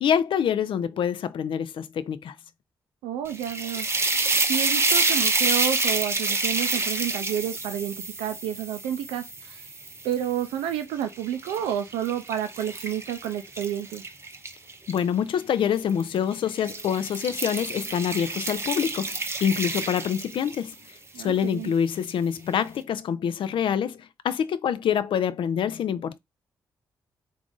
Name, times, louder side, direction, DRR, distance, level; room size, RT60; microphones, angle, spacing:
voice 1, 0.0-2.4 14.9-19.2 19.4-20.8 21.2-26.2, left 8 dB, 65° left, 0.4 m, -26 dB
voice 2, 3.0-3.9 4.5-9.7 10.0-14.0 21.1-21.7, right 10 dB, 85° right, 0.4 m, -30 dB
sound 1, 3.3-10.5 11.0-15.0 15.9-16.2 16.5-20.7, right 3 dB, 25° right, 0.7 m, -28 dB
3.6 x 2.5 x 3.7 m
hypercardioid pair, 40°, 9 cm